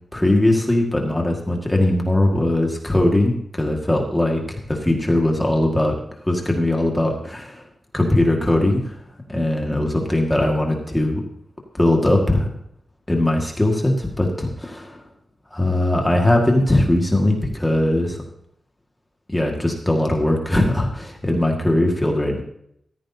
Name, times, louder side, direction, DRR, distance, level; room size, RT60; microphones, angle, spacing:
voice 1, 0.1-5.9 6.2-7.6 7.9-9.0 9.3-11.2 11.7-12.5 13.1-15.0 15.5-18.2 19.3-22.4, left 1 dB, 10° left, 1 dB, 1.8 m, -20 dB
15.0 x 14.0 x 2.8 m, 0.71 s
wide cardioid pair, 170°, 0 cm